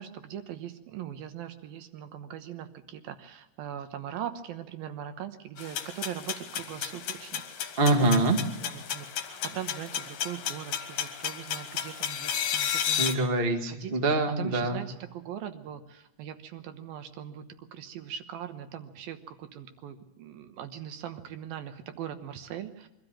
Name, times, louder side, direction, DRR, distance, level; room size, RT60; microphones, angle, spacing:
voice 1, 0.0-8.1 8.6-13.3 13.7-13.9 14.4-17.5 17.7-22.9, right 10 dB, 70° right, 9 dB, 2.7 m, -40 dB
sound 1, 5.6-13.1, left 9 dB, 60° left, 2.3 m, -33 dB
voice 2, 7.8-8.4 13.0-14.8, right 2 dB, 40° right, 4 dB, 0.7 m, -24 dB
23.5 x 13.0 x 8.8 m, 1.0 s
omnidirectional pair, 4.7 m